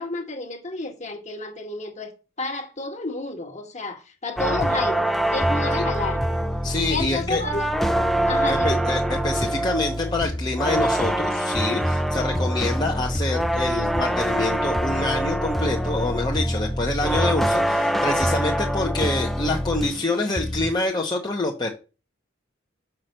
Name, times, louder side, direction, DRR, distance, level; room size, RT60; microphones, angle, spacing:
voice 1, 0.0-6.3 6.9-7.7 8.3-8.8, left 2 dB, 35° left, 1.5 m, -30 dB
sound 1, 4.4-20.1 20.4-20.8, equal, ahead, 0.6 m, -24 dB
voice 2, 6.6-7.4 8.5-21.7, left 2 dB, 20° left, 1.0 m, -26 dB
5.9 x 5.7 x 6.6 m
head